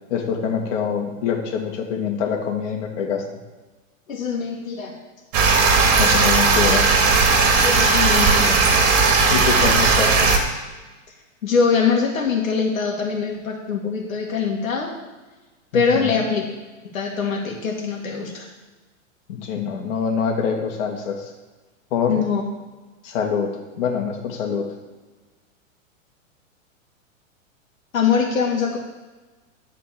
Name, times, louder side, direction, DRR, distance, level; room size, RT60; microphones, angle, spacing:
voice 1, 0.1-3.2 6.0-6.9 9.3-10.4 15.7-16.1 19.3-21.3 21.9-22.2 23.0-23.5 23.8-24.7, left 6 dB, 60° left, 0 dB, 2.2 m, -25 dB
voice 2, 4.1-5.0 7.6-8.6 11.4-14.9 15.7-16.4 16.9-18.5 22.1-22.4 27.9-28.8, left 5 dB, 80° left, 0 dB, 2.1 m, -22 dB
sound 1, 5.3-10.4, right 4 dB, 40° right, 2.2 m, -16 dB
11.5 x 4.5 x 7.6 m, 1.2 s
hypercardioid pair, 125°, 40 cm